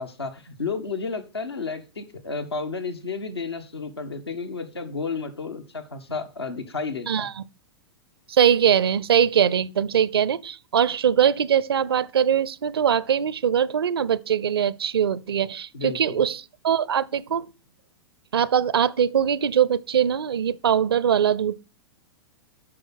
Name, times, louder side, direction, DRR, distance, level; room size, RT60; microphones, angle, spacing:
voice 1, 0.0-7.3 15.7-16.2, left 4 dB, 85° left, 1.5 m, -32 dB
voice 2, 7.1-7.4 8.3-17.5 18.3-21.6, right 8 dB, 75° right, 0.5 m, -22 dB
8.5 x 6.3 x 6.2 m
figure-of-eight pair, 105°, 13 cm